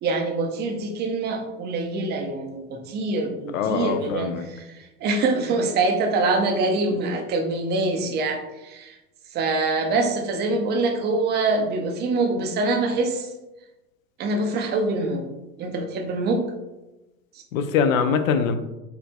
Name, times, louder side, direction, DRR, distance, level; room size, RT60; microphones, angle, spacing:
voice 1, 0.0-9.0 9.3-13.3 14.2-15.2 15.6-16.4, right 3 dB, 25° right, 4 dB, 0.5 m, -25 dB
voice 2, 3.5-4.5 17.5-18.5, left 6 dB, 65° left, 9 dB, 0.5 m, -23 dB
4.5 x 2.5 x 2.2 m, 1.0 s
hypercardioid pair, 90°, 45 cm